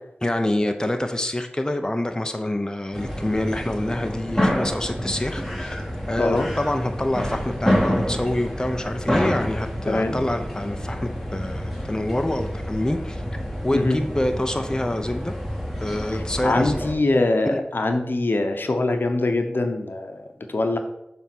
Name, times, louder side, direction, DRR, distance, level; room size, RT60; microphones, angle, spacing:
voice 1, 0.2-5.8 6.1-13.2 13.6-15.3 15.8-16.8 17.5-17.6, left 1 dB, 20° left, 6 dB, 0.7 m, -26 dB
sound 1, 2.9-16.9, equal, ahead, 2.0 m, -28 dB
voice 2, 6.2-6.5 9.9-10.2 13.7-14.0 16.1-20.2 20.5-20.8, left 2 dB, 70° left, 5 dB, 0.8 m, -23 dB
7.1 x 3.5 x 6.0 m, 0.84 s
cardioid pair, 40°, 4 cm